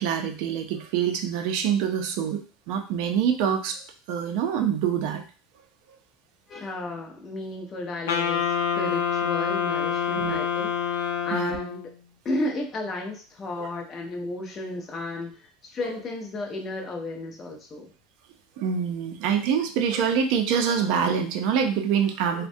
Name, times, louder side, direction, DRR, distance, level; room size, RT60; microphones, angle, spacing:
voice 1, 0.0-3.8 4.1-5.2 10.2-10.4 11.3-11.6 13.6-13.7 18.6-22.5, right 7 dB, 50° right, 5 dB, 0.4 m, -25 dB
voice 2, 6.5-8.4 8.7-10.9 11.2-11.8 12.2-17.9, left 2 dB, 20° left, 1 dB, 0.5 m, -33 dB
Wind instrument woodwind instrument, 8.1-11.9, left 8 dB, 85° left, 0.5 m, -26 dB
3.4 x 2.1 x 2.6 m, 0.38 s
supercardioid pair, 170°, 0 cm